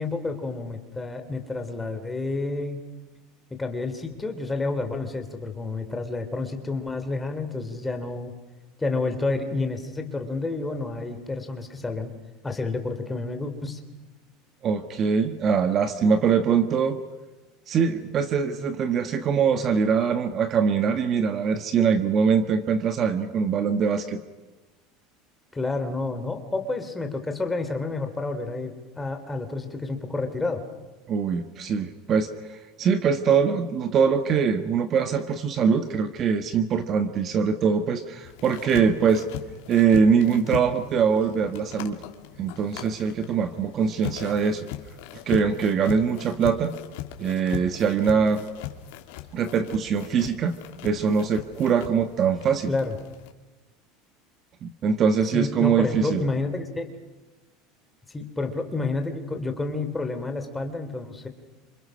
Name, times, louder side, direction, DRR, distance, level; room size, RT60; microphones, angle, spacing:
voice 1, 0.0-2.8 3.5-8.3 8.8-12.1 12.4-13.8 25.5-30.6 52.7-53.0 55.3-56.9 58.1-61.3, left 3 dB, 10° left, 6 dB, 3.0 m, -29 dB
voice 2, 14.6-17.0 17.7-24.2 31.1-39.2 39.7-42.0 42.4-44.7 45.3-46.7 47.2-48.4 49.3-52.7 54.6-56.2, right 6 dB, 30° right, 9 dB, 1.4 m, -23 dB
sound 1, 38.2-53.3, left 12 dB, 75° left, 2.8 m, -39 dB
29.5 x 27.0 x 6.4 m, 1.2 s
cardioid pair, 160°, 0 cm